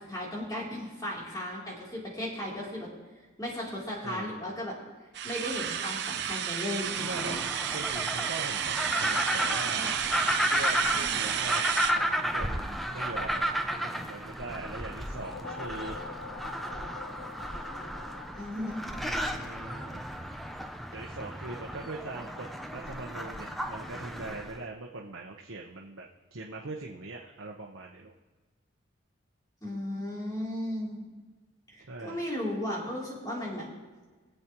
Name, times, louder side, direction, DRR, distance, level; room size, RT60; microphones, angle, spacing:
voice 1, 0.0-2.9 3.4-4.8 5.2-7.4 18.4-18.8 29.6-31.1 31.7-33.7, left 1 dB, 20° left, -5 dB, 3.2 m, -35 dB
voice 2, 4.0-4.5 7.0-7.4 7.7-10.0 10.4-16.1 18.9-20.3 20.9-28.1 31.9-32.3, right 2 dB, 85° right, -1 dB, 1.0 m, -41 dB
sound 1, 5.1-11.9, right 8 dB, 55° right, 0.7 m, -31 dB
sound 2, 6.8-24.6, equal, ahead, 0.5 m, -33 dB
sound 3, 15.0-19.5, left 5 dB, 55° left, 0.5 m, -45 dB
23.0 x 8.0 x 3.0 m, 1.3 s
head